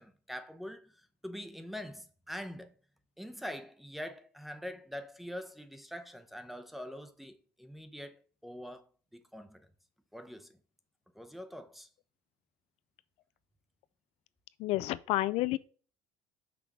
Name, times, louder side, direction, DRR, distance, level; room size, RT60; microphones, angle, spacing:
voice 1, 0.0-2.7 3.2-8.8 9.1-9.7 10.1-10.6 11.1-11.9, equal, ahead, 0.7 m, -44 dB
voice 2, 14.6-15.6, left 17 dB, 60° left, 0.5 m, -30 dB
5.9 x 3.5 x 6.0 m
cardioid pair, 145°, 12 cm